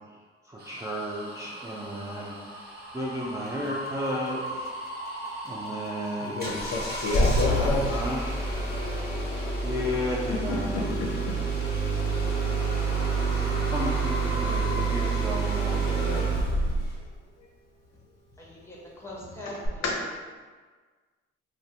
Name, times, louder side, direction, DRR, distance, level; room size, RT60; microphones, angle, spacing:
voice 1, 0.4-2.7 2.9-4.7 5.4-6.7 7.4-8.2 9.6-10.9 13.3-15.9, equal, 10° right, -6 dB, 0.4 m, -33 dB
sound 1, 0.6-10.5 11.0-16.3, equal, 30° right, 1.4 m, -39 dB
voice 2, 6.2-8.0 10.3-11.1 15.8-16.3 17.0-17.1 17.4-17.5 19.4-20.0, left 3 dB, 55° left, 0 dB, 0.5 m, -31 dB
Engine starting, 6.4-17.0 19.6-19.7, right 3 dB, 30° left, 1.2 m, -27 dB
voice 3, 18.4-19.8, left 1 dB, 10° left, -5 dB, 1.1 m, -41 dB
2.5 x 2.3 x 3.4 m, 1.5 s
hypercardioid pair, 50°, 31 cm